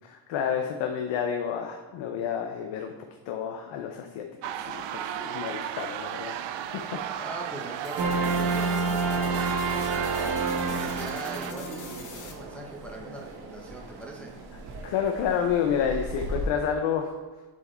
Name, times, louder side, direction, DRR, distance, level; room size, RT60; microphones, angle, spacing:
voice 1, 0.0-2.9 3.3-6.4 6.7-7.0 14.8-17.1, left 8 dB, 90° left, 4 dB, 0.7 m, -29 dB
sound 1, 4.4-11.5, right 10 dB, 80° right, 0.5 m, -35 dB
voice 2, 7.2-10.3 10.8-14.3, right 1 dB, 5° left, -2 dB, 0.6 m, -41 dB
sound 2, 7.8-12.3, left 5 dB, 45° left, 1.0 m, -45 dB
sound 3, 8.0-16.5, right 4 dB, 60° right, 1.1 m, -31 dB
6.8 x 4.8 x 4.3 m, 1.2 s
cardioid pair, 170°, 43 cm